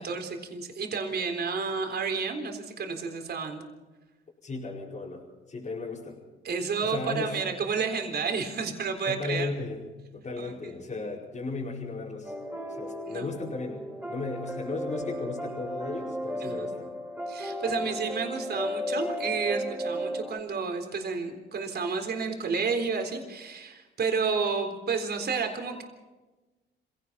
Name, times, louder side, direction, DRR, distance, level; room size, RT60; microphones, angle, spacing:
voice 1, 0.0-3.7 6.4-9.5 10.4-10.7 13.1-13.3 16.4-16.7 17.3-25.8, right 5 dB, 55° right, 4 dB, 3.9 m, -31 dB
voice 2, 4.4-6.2 6.8-7.3 9.0-9.8 10.1-12.3 12.6-16.9 17.7-17.9, left 3 dB, 35° left, -6 dB, 4.9 m, -35 dB
sound 1, 12.2-20.4, equal, 10° right, 6.4 m, -34 dB
26.5 x 17.0 x 5.8 m, 1.2 s
cardioid pair, 90°, 20 cm